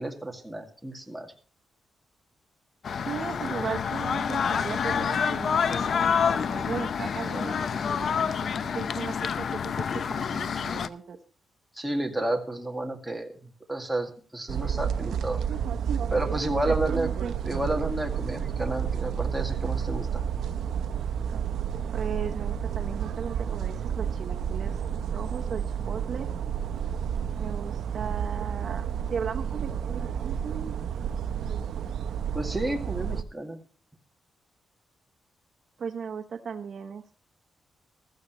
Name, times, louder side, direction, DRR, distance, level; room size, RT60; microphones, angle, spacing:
voice 1, 0.0-1.3 11.8-15.4 16.1-17.1 17.5-20.2 32.3-33.6, right 1 dB, 5° right, 2 dB, 2.1 m, -31 dB
sound 1, 2.8-10.9, left 7 dB, 55° left, 0.6 m, -28 dB
voice 2, 3.1-11.2 16.7-17.3 21.9-24.8 25.1-26.3 27.4-30.7 35.8-37.2, right 6 dB, 55° right, 5 dB, 1.0 m, -37 dB
sound 2, 14.5-33.2, right 8 dB, 80° right, 0.7 m, -30 dB
15.5 x 13.5 x 3.1 m, 0.38 s
cardioid pair, 120°, 0 cm